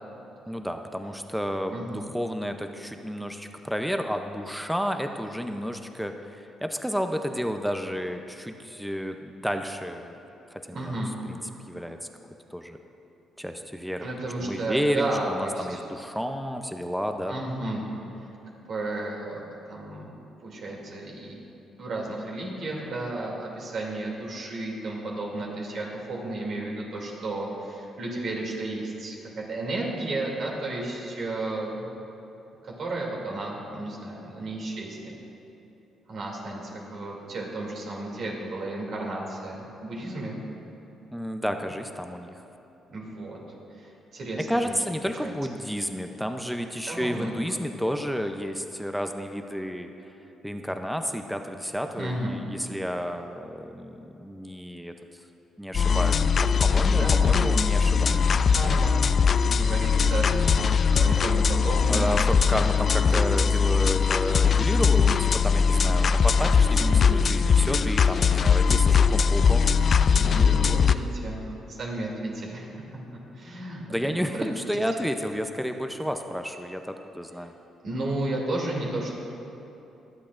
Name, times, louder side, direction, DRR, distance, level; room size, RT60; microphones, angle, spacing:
voice 1, 0.5-10.2 10.5-11.4 11.7-12.0 12.5-12.8 13.4-14.0 14.4-17.3 41.1-42.4 44.5-49.9 50.4-54.9 55.6-58.4 61.9-69.7 73.9-77.5, equal, ahead, 6 dB, 0.6 m, -31 dB
voice 2, 1.7-2.0 10.7-11.1 14.0-15.8 17.3-17.9 18.7-19.4 19.7-20.1 20.4-21.4 21.8-31.8 32.6-35.1 36.1-40.4 42.9-43.4 43.8-44.8 45.2-45.3 46.9-47.3 52.0-52.4 56.9-57.5 58.5-59.0 59.4-62.2 66.8-67.0 70.1-72.8 73.3-74.6 77.8-79.2, right 2 dB, 60° right, -2 dB, 2.7 m, -33 dB
sound 1, 55.7-70.9, left 6 dB, 50° left, 0.3 m, -21 dB
24.5 x 8.4 x 2.5 m, 3.0 s
cardioid pair, 90°, 0 cm